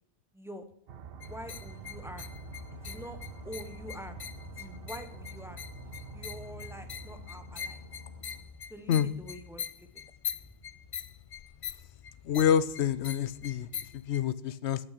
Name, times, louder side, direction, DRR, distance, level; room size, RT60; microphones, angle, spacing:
voice 1, 0.3-0.6 1.2-2.3 2.8-3.2 3.4-4.2 4.6-5.6 5.8-7.8 8.7-9.9, equal, ahead, 6 dB, 1.1 m, -45 dB
sound 1, 0.9-8.7, right 8 dB, 65° right, 0.9 m, -48 dB
sound 2, 1.2-14.2, left 8 dB, 55° left, 0.4 m, -44 dB
sound 3, 1.9-8.4, left 4 dB, 80° right, 3.6 m, -49 dB
voice 2, 12.3-13.7 14.1-14.8, left 9 dB, 85° left, 17 dB, 0.9 m, -27 dB
12.5 x 8.6 x 5.0 m, 0.70 s
omnidirectional pair, 1.1 m